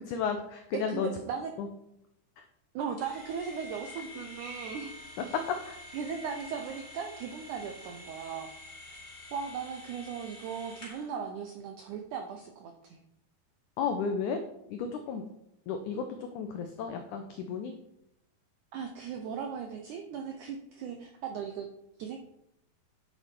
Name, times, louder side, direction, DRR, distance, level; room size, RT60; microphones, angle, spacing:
voice 1, 0.1-1.1 1.6-1.7 2.4-2.5 5.2-5.8 13.8-14.4 14.7-15.2 15.7-17.7, left 6 dB, 90° left, 6 dB, 1.7 m, -33 dB
voice 2, 0.9-1.5 2.7-5.3 5.9-8.5 9.3-13.0 18.7-21.7 22.0-22.2, right 6 dB, 85° right, 4 dB, 1.7 m, -38 dB
sound 1, 3.0-11.1, left 1 dB, 25° left, 4.5 m, -48 dB
10.5 x 6.9 x 4.5 m, 0.82 s
omnidirectional pair, 4.4 m